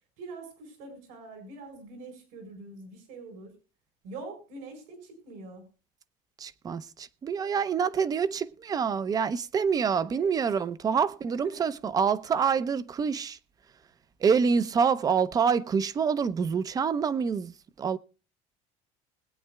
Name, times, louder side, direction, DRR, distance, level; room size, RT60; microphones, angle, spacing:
voice 1, 0.2-3.5 4.0-5.6 9.9-10.4 10.8-11.0 11.4-11.6, right 3 dB, 80° right, 4.8 m, -44 dB
voice 2, 6.4-13.4 14.2-18.0, right 6 dB, 25° right, 0.7 m, -26 dB
21.0 x 9.3 x 2.3 m
cardioid pair, 145°, 14 cm